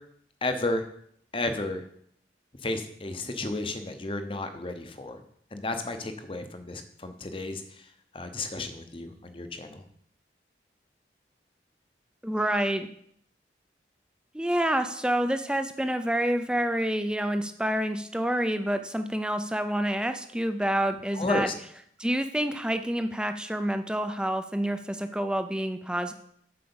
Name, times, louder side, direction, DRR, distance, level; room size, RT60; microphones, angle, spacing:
voice 1, 0.4-0.8 1.3-1.8 2.6-5.2 5.5-7.6 8.1-9.8 21.1-21.5, left 2 dB, 30° left, 8 dB, 0.8 m, -32 dB
voice 2, 12.2-12.9 14.3-21.5 22.0-26.1, right 1 dB, 5° right, 8 dB, 0.5 m, -28 dB
7.7 x 4.9 x 7.0 m, 0.68 s
head